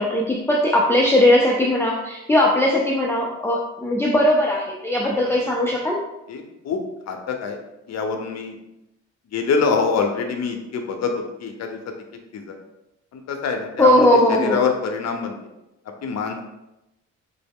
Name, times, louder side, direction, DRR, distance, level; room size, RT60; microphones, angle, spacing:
voice 1, 0.0-6.0 13.8-14.6, left 1 dB, 10° left, -3 dB, 0.4 m, -19 dB
voice 2, 6.3-6.8 7.1-7.6 7.9-8.5 9.3-11.9 12.3-12.6 13.1-15.4 16.0-16.4, left 5 dB, 60° left, 4 dB, 0.7 m, -25 dB
4.6 x 2.0 x 3.5 m, 0.92 s
cardioid pair, 90°, 30 cm